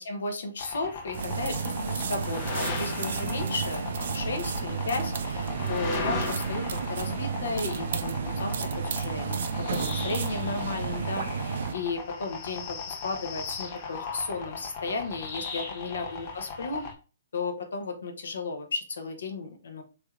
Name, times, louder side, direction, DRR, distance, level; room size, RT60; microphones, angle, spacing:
voice 1, 0.0-9.4 9.7-16.8 17.3-19.8, left 3 dB, 75° left, 5 dB, 0.8 m, -34 dB
sound 1, 0.6-16.9, left 5 dB, 40° left, 0.7 m, -38 dB
sound 2, 1.1-11.7, right 5 dB, 65° right, 0.4 m, -31 dB
3.3 x 3.2 x 2.4 m, 0.34 s
hypercardioid pair, 125°, 0 cm